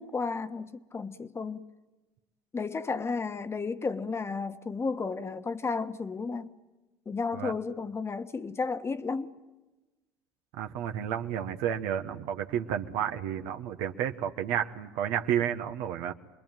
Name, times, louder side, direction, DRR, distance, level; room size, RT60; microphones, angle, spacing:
voice 1, 0.0-1.7 2.5-6.5 7.0-9.3, left 4 dB, 25° left, 1.3 m, -33 dB
voice 2, 10.5-16.1, right 9 dB, 75° right, 1.2 m, -31 dB
26.5 x 21.0 x 9.1 m
hypercardioid pair, 80°, 10 cm